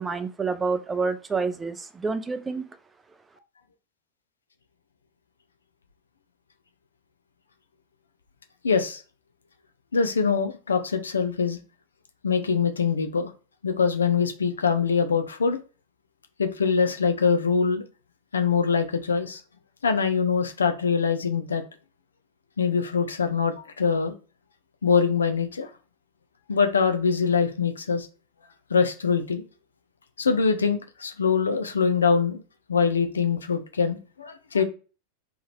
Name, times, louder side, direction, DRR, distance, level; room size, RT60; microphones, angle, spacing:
voice 1, 0.0-2.6, right 4 dB, 15° right, 10 dB, 0.5 m, -28 dB
voice 2, 8.6-9.0 9.9-11.6 12.2-13.3 13.6-15.6 16.4-17.8 18.3-19.4 19.8-21.6 22.6-24.1 24.8-25.7 26.5-28.1 28.7-29.4 30.2-32.4 32.7-34.6, left 5 dB, 70° left, 7 dB, 0.5 m, -23 dB
3.5 x 3.0 x 3.3 m, 0.35 s
figure-of-eight pair, 90°, 0 cm